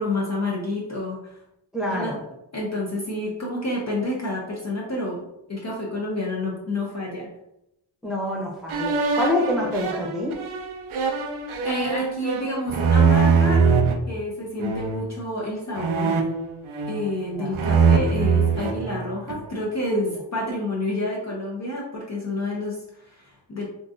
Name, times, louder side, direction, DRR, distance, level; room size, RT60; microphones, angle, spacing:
voice 1, 0.0-1.4 1.9-2.2 2.5-7.3 11.6-13.6 14.1-16.3 16.9-23.6, left 1 dB, 35° left, -4 dB, 0.6 m, -29 dB
voice 2, 1.7-2.2 8.0-10.4 17.3-17.5, left 1 dB, ahead, -4 dB, 0.8 m, -26 dB
sound 1, 8.7-13.9 14.6-15.1 15.8-17.2 17.5-19.5, right 5 dB, 85° right, 0.6 m, -22 dB
3.7 x 2.5 x 2.5 m, 0.85 s
wide cardioid pair, 100°, 48 cm